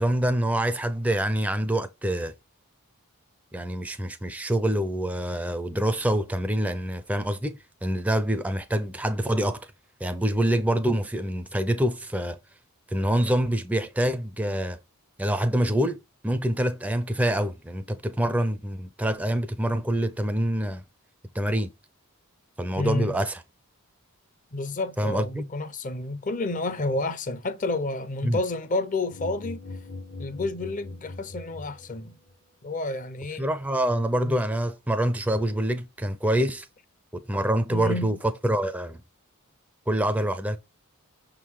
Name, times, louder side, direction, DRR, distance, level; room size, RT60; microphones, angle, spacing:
voice 1, 0.0-2.3 3.5-9.7 10.0-12.4 12.9-14.8 15.2-20.8 21.3-21.7 22.6-23.4 25.0-25.4 28.2-28.4 33.4-36.7 37.1-38.2 38.4-39.0 39.9-40.6, right 1 dB, 5° right, 0.4 m, -26 dB
voice 2, 22.8-23.2 24.5-29.6 30.2-32.2 32.6-33.5 34.2-34.3 37.7-38.2, left 2 dB, 35° left, 0.6 m, -30 dB
sound 1, 29.1-32.3, left 2 dB, 55° left, 1.0 m, -40 dB
6.2 x 3.8 x 4.6 m
head